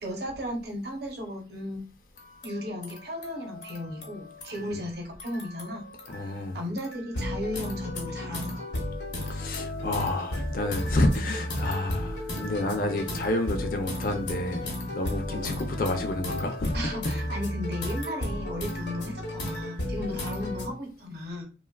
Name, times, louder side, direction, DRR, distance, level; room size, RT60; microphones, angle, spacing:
voice 1, 0.0-1.8 2.4-5.9 6.3-8.6 14.6-14.8 15.3-15.6 16.7-21.4, left 1 dB, 60° right, 0.8 m, -35 dB
sound 1, 2.2-4.9 5.2-6.5 6.8-20.7, left 1 dB, 75° left, 0.8 m, -34 dB
voice 2, 6.1-6.6 9.3-14.6 14.9-16.7, left 1 dB, 50° left, 0.4 m, -29 dB
2.9 x 2.2 x 2.2 m
head